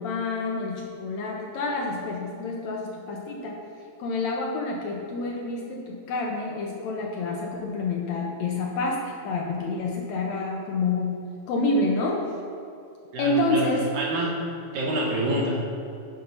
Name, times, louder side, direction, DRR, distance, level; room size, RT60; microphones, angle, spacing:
voice 1, 0.0-3.6 4.0-12.4 13.2-13.9, left 2 dB, 70° left, 0 dB, 1.8 m, -28 dB
voice 2, 13.1-13.7 13.9-14.4 14.7-15.6, right 1 dB, 65° right, -3 dB, 2.7 m, -26 dB
7.8 x 5.4 x 5.5 m, 2.6 s
omnidirectional pair, 3.7 m